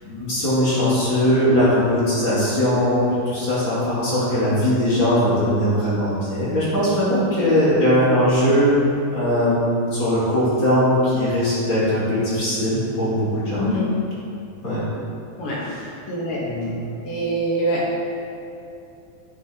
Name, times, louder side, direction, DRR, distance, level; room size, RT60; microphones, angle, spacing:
voice 1, 0.0-8.7 9.1-13.6 14.6-14.8 15.6-15.9 16.4-16.7, equal, 35° left, -10 dB, 2.5 m, -20 dB
voice 2, 16.1-16.4 17.0-18.0, right 1 dB, 80° left, -6 dB, 1.2 m, -24 dB
10.0 x 9.1 x 2.9 m, 2.8 s
omnidirectional pair, 4.5 m